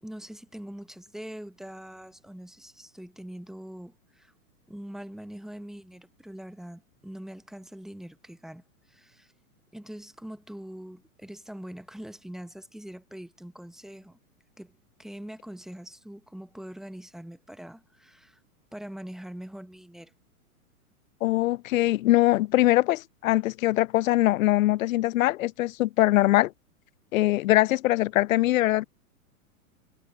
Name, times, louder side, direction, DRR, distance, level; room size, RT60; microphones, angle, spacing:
voice 1, 0.0-4.3 4.7-9.3 9.7-14.2 14.6-14.7 15.0-18.4 18.7-20.1, equal, ahead, 0.7 m, -43 dB
voice 2, 21.2-26.5 27.1-28.8, left 16 dB, 65° left, 0.5 m, -22 dB
hypercardioid pair, 115°, 44 cm